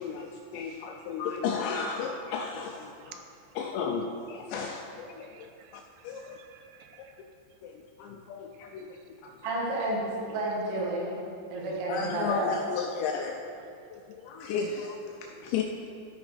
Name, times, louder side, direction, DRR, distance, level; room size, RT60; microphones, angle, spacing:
voice 1, 0.0-3.2 3.6-6.4 7.6-9.0 9.2-9.5 11.6-13.5 13.9-15.6, left 6 dB, 85° left, 2 dB, 2.6 m, -34 dB
voice 2, 5.2-7.2 8.5-9.3 11.0-11.9 12.7-12.8 14.2-14.3, right 8 dB, 85° right, 5 dB, 3.3 m, -51 dB
voice 3, 9.4-11.2 11.5-12.5, right 1 dB, 65° right, -4 dB, 3.5 m, -30 dB
14.0 x 5.0 x 4.8 m, 2.5 s
omnidirectional pair, 5.6 m